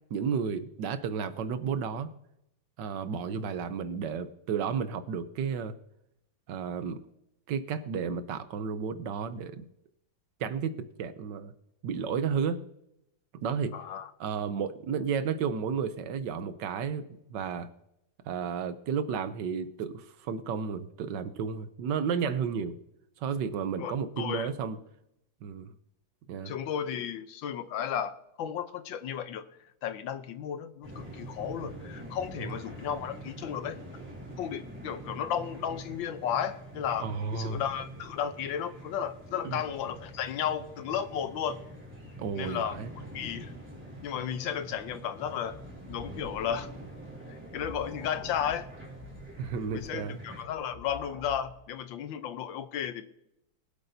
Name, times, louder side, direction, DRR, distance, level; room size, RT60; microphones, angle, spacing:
voice 1, 0.1-2.1 2.8-5.8 6.5-7.0 7.5-9.6 10.4-11.5 11.8-12.6 13.4-13.7 14.2-17.7 18.3-22.8 23.2-24.8 25.4-25.7 26.3-26.5 32.4-32.5 37.0-37.6 39.4-39.6 42.2-42.9 49.4-50.2, right 6 dB, 70° right, 1.3 m, -32 dB
voice 2, 13.7-14.1 23.8-24.5 26.5-29.4 29.8-33.8 34.4-37.1 37.3-41.6 42.3-42.8 43.1-43.5 44.0-45.6 45.9-46.7 47.5-48.7 49.7-53.0, left 9 dB, 75° left, 1.5 m, -34 dB
sound 1, 30.8-50.4, right 1 dB, 5° right, 2.9 m, -45 dB
sound 2, 45.1-51.7, left 2 dB, 50° left, 2.9 m, -49 dB
23.0 x 8.1 x 2.7 m
omnidirectional pair, 2.1 m